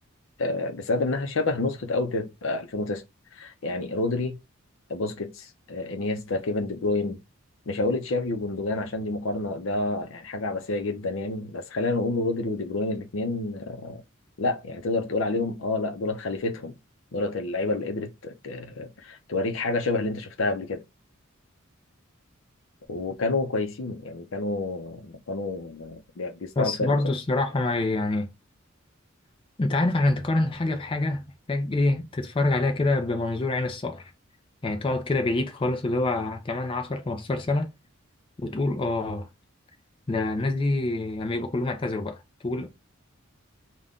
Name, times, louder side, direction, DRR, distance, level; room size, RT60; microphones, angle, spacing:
voice 1, 0.4-3.0 3.3-4.4 4.9-7.2 7.7-14.0 14.4-16.7 17.1-20.8 22.9-27.0, left 2 dB, 70° left, 0.6 m, -29 dB
voice 2, 26.6-28.3 29.6-34.1 34.6-37.7 38.4-39.3 40.1-42.7, left 2 dB, 25° left, 0.4 m, -26 dB
2.5 x 2.2 x 3.4 m
head